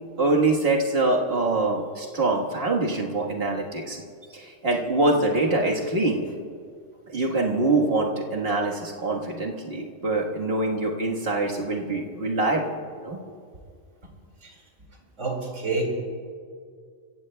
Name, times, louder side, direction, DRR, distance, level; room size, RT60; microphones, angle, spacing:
voice 1, 0.2-4.0 4.3-6.2 7.1-12.7 13.0-13.4, right 2 dB, 50° right, -1 dB, 1.6 m, -24 dB
voice 2, 15.2-15.8, right 3 dB, 65° right, 0 dB, 2.6 m, -28 dB
29.0 x 15.5 x 2.2 m, 2.1 s
omnidirectional pair, 1.3 m